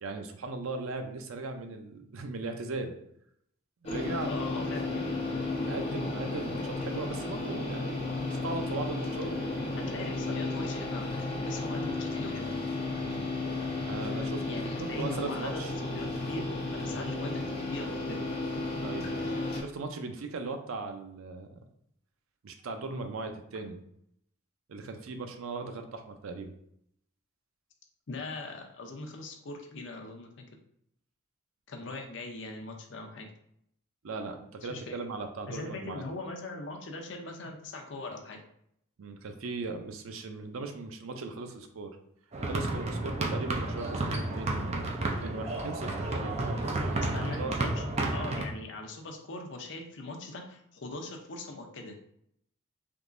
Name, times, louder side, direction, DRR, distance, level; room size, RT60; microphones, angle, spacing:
voice 1, 0.0-3.0 3.8-4.3 5.6-9.3 13.0-13.2 13.8-14.6 15.0-15.7 18.8-19.1 19.6-21.6 22.4-23.8 24.7-26.5 34.0-36.0 39.0-41.9 42.4-44.9 45.2-47.0 47.3-47.5, right 3 dB, 90° right, 6 dB, 0.5 m, -38 dB
sound 1, 3.8-19.6, left 2 dB, 30° left, 0.8 m, -33 dB
voice 2, 4.3-5.3 9.8-12.5 14.5-16.5 16.8-18.2 28.1-30.3 31.7-33.3 34.7-35.0 35.5-38.4 47.1-47.9 48.1-51.9, left 2 dB, 60° left, 3 dB, 0.6 m, -40 dB
sound 2, 42.3-48.4, right 2 dB, 30° right, 0.4 m, -31 dB
3.6 x 2.8 x 2.5 m, 0.72 s
head